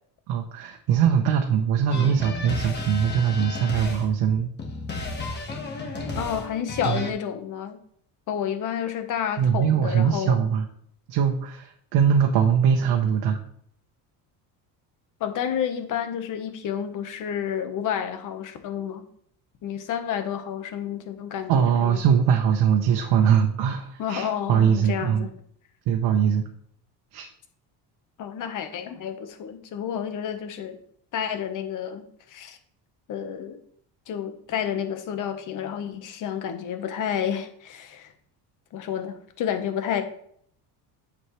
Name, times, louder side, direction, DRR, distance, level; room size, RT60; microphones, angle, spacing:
voice 1, 0.3-4.5 6.9-7.0 9.4-10.7 11.1-13.4 21.5-25.3 25.9-26.5 27.1-27.3, right 8 dB, 70° right, 3 dB, 1.0 m, -22 dB
sound 1, 1.9-7.1, left 3 dB, 25° left, 1.5 m, -33 dB
voice 2, 6.2-7.8 8.3-10.4 15.2-19.0 19.6-22.0 24.0-25.3 28.2-30.8 31.1-32.6 33.1-33.6 34.1-38.1 38.7-40.0, left 8 dB, 50° left, 7 dB, 1.2 m, -30 dB
9.4 x 7.4 x 3.2 m, 0.64 s
cardioid pair, 160°, 39 cm